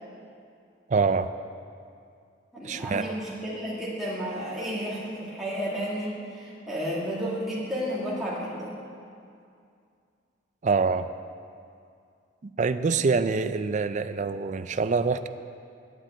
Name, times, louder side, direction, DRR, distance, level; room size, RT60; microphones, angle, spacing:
voice 1, 0.9-1.3 2.6-3.1 10.6-11.1 12.4-15.3, right 4 dB, 40° right, 11 dB, 0.4 m, -25 dB
voice 2, 2.5-8.8, equal, ahead, -8 dB, 2.2 m, -32 dB
10.0 x 8.9 x 9.0 m, 2.4 s
head